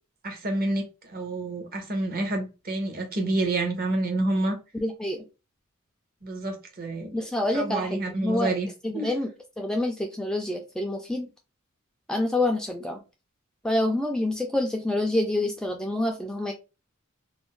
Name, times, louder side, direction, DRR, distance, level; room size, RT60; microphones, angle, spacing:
voice 1, 0.2-4.6 6.2-7.2 7.5-8.7 8.9-9.1, right 2 dB, 45° right, 0.8 m, -28 dB
voice 2, 4.7-5.2 7.1-8.5 8.8-9.3 9.6-11.3 12.1-13.0 13.6-16.5, left 1 dB, 5° left, 0.3 m, -27 dB
2.4 x 2.0 x 3.6 m
head